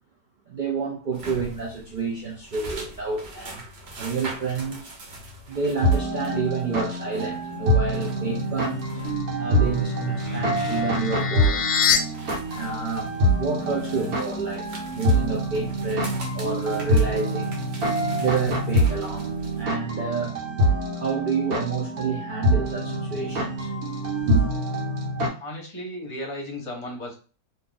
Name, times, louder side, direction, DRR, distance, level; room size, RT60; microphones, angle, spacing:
voice 1, 0.5-3.6 4.0-4.9 5.5-9.0 9.4-11.6 12.5-14.7 14.9-17.6 18.1-19.3 19.6-20.4 21.0-23.7 24.2-24.5, right 5 dB, 70° right, 0.4 m, -29 dB
sound 1, 1.1-19.6, right 1 dB, 50° right, 1.0 m, -43 dB
sound 2, 5.8-25.3, equal, 90° right, 1.4 m, -25 dB
sound 3, 9.7-12.0, left 8 dB, 70° left, 0.9 m, -26 dB
voice 2, 25.4-27.1, left 1 dB, 30° left, 0.7 m, -35 dB
2.7 x 2.4 x 3.8 m
omnidirectional pair, 1.6 m